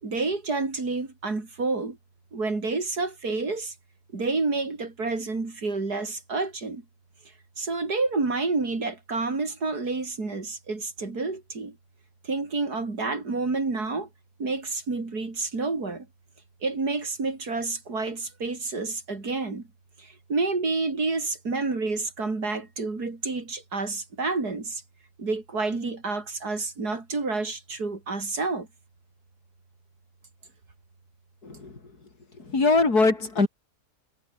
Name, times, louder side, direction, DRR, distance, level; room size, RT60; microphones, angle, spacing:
voice 1, 0.0-2.0 2.3-3.7 4.1-6.8 7.6-11.8 12.2-14.1 14.4-16.1 16.6-19.7 20.0-24.8 25.2-28.7, right 3 dB, 65° right, 4.3 m, -29 dB
voice 2, 32.5-33.5, left 3 dB, 65° left, 4.4 m, -21 dB
omnidirectional pair, 1.8 m